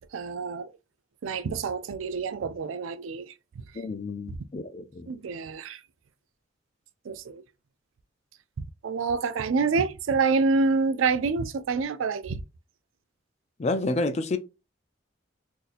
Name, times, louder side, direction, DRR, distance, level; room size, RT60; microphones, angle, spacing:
voice 1, 0.1-0.7 1.2-3.6 4.3-4.4 5.1-5.8 7.1-7.4 8.8-12.4, right 4 dB, 90° right, 0.4 m, -27 dB
voice 2, 3.8-5.1 13.6-14.4, left 2 dB, 35° left, 0.4 m, -29 dB
4.1 x 2.6 x 2.5 m
head